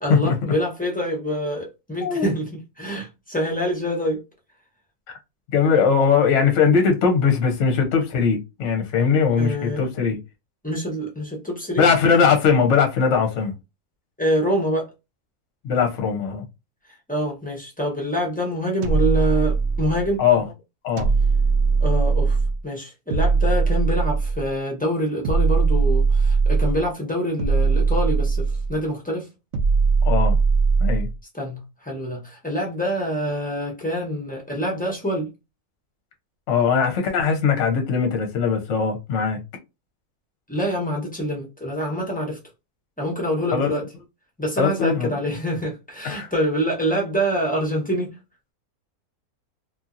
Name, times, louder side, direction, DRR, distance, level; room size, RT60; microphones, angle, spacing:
voice 1, 0.0-4.2 9.1-9.8 10.6-11.8 14.2-14.9 17.1-20.2 21.8-22.4 22.6-29.3 31.3-35.3 40.5-42.4 43.0-43.9 44.4-48.2, equal, 10° left, 0.5 m, -26 dB
voice 2, 5.5-10.2 11.8-13.5 15.6-16.4 20.2-20.4 20.8-21.1 30.0-30.4 30.8-31.1 36.5-39.4 43.5-43.7 44.6-45.1 46.0-46.3, left 6 dB, 60° left, 0.9 m, -20 dB
sound 1, 18.8-20.1 21.0-22.6 23.1-24.5 25.2-26.9 27.4-28.8 29.5-31.1, right 4 dB, 70° right, 0.8 m, -20 dB
2.7 x 2.6 x 2.4 m
omnidirectional pair, 1.6 m